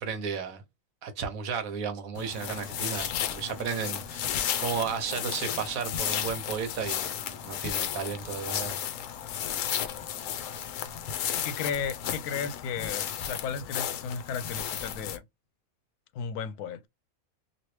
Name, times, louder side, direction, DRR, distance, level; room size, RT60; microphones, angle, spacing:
voice 1, 0.0-0.6 1.0-8.8, right 6 dB, 70° right, 1.2 m, -34 dB
sound 1, 2.1-15.2, left 9 dB, 70° left, 0.9 m, -33 dB
voice 2, 11.3-15.2 16.1-16.9, left 6 dB, 90° left, 1.1 m, -34 dB
3.0 x 2.7 x 3.0 m
omnidirectional pair, 1.6 m